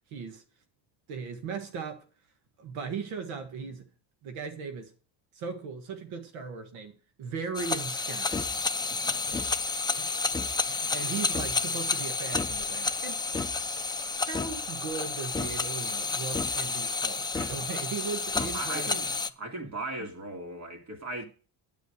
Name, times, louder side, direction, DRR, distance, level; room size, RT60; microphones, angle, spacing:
voice 1, 0.1-0.4 1.1-2.0 2.6-3.9 4.2-4.9 5.3-6.9 7.2-8.5 10.0-10.3 10.7-13.2 14.3-18.9 20.0-20.1, right 5 dB, 75° right, 1.8 m, -38 dB
sound 1, 7.5-19.3, left 4 dB, 10° left, 0.6 m, -30 dB
voice 2, 8.9-9.3 18.4-21.3, right 2 dB, 35° right, 3.1 m, -38 dB
9.9 x 9.1 x 5.0 m
cardioid pair, 125°, 48 cm